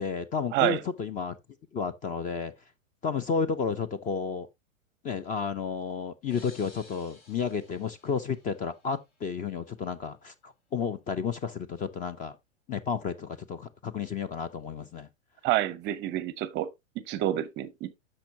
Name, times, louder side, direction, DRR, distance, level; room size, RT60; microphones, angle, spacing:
voice 1, 0.0-1.4 1.7-2.5 3.0-4.5 5.0-12.4 12.7-15.1, left 6 dB, 20° left, 0.7 m, -32 dB
sound 1, 6.3-9.1, left 3 dB, 60° left, 4.6 m, -55 dB
voice 2, 15.4-16.7 17.1-17.9, right 14 dB, 25° right, 0.7 m, -28 dB
10.0 x 6.5 x 2.8 m
hypercardioid pair, 115°, 40 cm